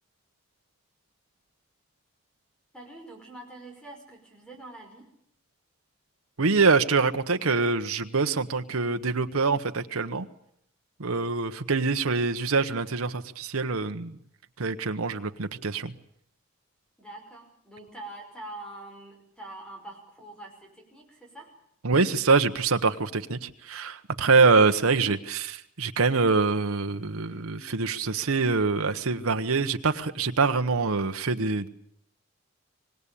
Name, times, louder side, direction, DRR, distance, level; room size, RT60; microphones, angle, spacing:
voice 1, 2.7-5.1 17.0-21.5, right 2 dB, 5° left, 2 dB, 5.6 m, -44 dB
voice 2, 6.4-10.3 11.0-14.2 14.6-15.9 21.8-31.7, right 4 dB, 90° right, 7 dB, 1.1 m, -25 dB
25.5 x 19.5 x 8.5 m, 0.70 s
head